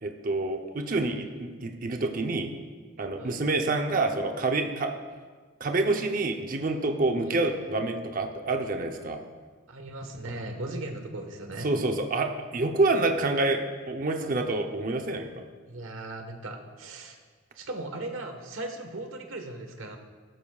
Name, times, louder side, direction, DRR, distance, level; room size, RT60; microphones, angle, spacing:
voice 1, 0.0-2.5 3.0-4.9 5.6-9.2 11.6-15.4, right 2 dB, 45° right, 4 dB, 0.7 m, -27 dB
voice 2, 9.7-11.8 15.7-17.2 17.5-20.0, right 2 dB, 85° right, 4 dB, 1.3 m, -38 dB
14.5 x 12.5 x 2.4 m, 1.5 s
head